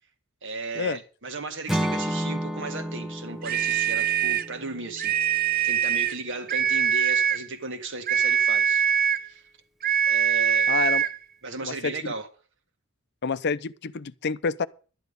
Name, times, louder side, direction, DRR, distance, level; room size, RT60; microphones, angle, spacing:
voice 1, 0.4-5.4 5.6-8.9 9.3-9.4 10.1-10.8 11.4-12.3, right 3 dB, 60° right, 1.8 m, -35 dB
Acoustic guitar / Strum, 1.7-5.8, equal, ahead, 0.7 m, -32 dB
sound 1, 3.4-4.5 5.0-6.2 6.5-7.5 8.1-9.3 9.8-11.2, right 8 dB, 45° right, 0.5 m, -23 dB
voice 2, 10.7-11.1 11.6-12.1 13.2-14.7, left 5 dB, 50° left, 0.6 m, -28 dB
12.0 x 10.5 x 5.3 m
head